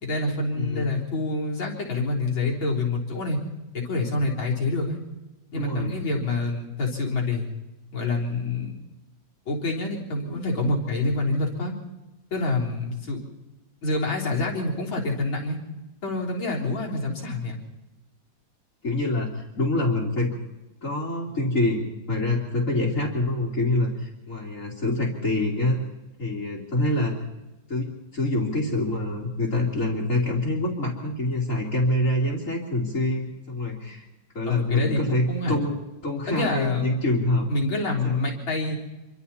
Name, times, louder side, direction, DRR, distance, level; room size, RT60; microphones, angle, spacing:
voice 1, 0.0-3.4 3.9-5.0 5.5-7.5 7.9-8.8 9.5-11.7 12.3-13.2 13.8-15.6 16.0-17.6 34.5-35.6 36.3-36.9 37.5-38.8, left 2 dB, 80° left, -2 dB, 4.7 m, -27 dB
voice 2, 0.6-0.9 5.5-5.9 18.8-20.3 20.8-25.8 26.2-27.2 27.7-34.1 34.3-35.8 36.0-37.5 38.0-38.2, left 1 dB, 40° left, -5 dB, 3.3 m, -26 dB
27.0 x 24.0 x 4.3 m, 1.0 s
omnidirectional pair, 2.1 m